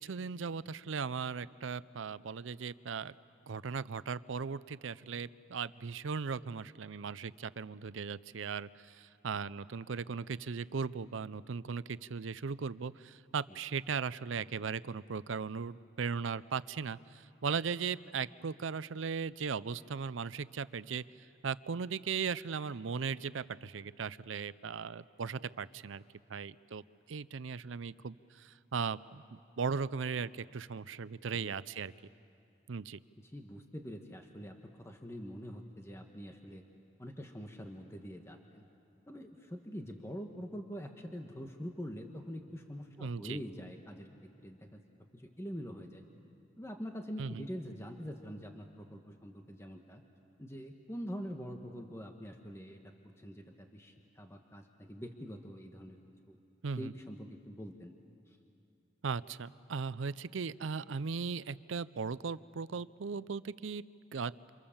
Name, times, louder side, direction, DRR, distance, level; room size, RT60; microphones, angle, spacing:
voice 1, 0.0-3.1 3.5-21.0 21.4-26.0 26.3-26.8 27.1-29.2 29.6-31.9 32.7-33.0 43.0-43.4 47.2-47.5 56.6-56.9 59.0-63.8 64.1-64.3, right 5 dB, 80° right, 17 dB, 0.5 m, -38 dB
voice 2, 33.2-36.6 37.0-38.7 39.1-44.1 44.4-44.8 45.1-46.0 46.6-50.0 50.4-52.8 53.2-56.0 56.3-56.4 56.7-57.9 58.3-58.4, equal, 15° left, 4 dB, 1.3 m, -45 dB
28.5 x 28.0 x 7.2 m, 2.5 s
head